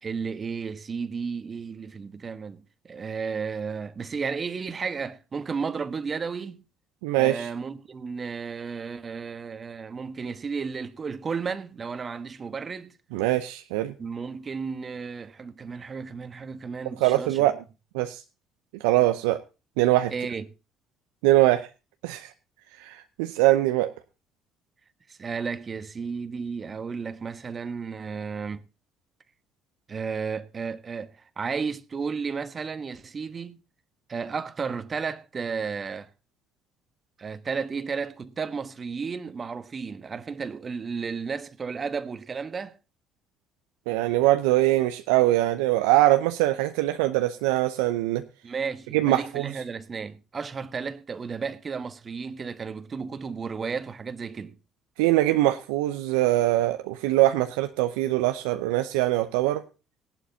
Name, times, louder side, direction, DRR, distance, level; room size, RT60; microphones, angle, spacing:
voice 1, 0.0-6.6 7.1-12.9 14.0-17.4 20.1-20.5 25.1-28.6 29.9-33.6 34.1-36.1 37.2-42.7 48.4-54.6, right 5 dB, 40° right, 1.3 m, -33 dB
voice 2, 7.0-7.5 13.1-13.9 17.0-17.6 17.9-18.2 18.8-19.4 19.8-20.1 21.2-21.7 22.0-22.3 22.8-23.9 43.9-48.2 48.9-49.5 55.0-59.6, right 16 dB, 75° right, 0.7 m, -22 dB
18.0 x 11.5 x 2.8 m
hypercardioid pair, 55°, 0 cm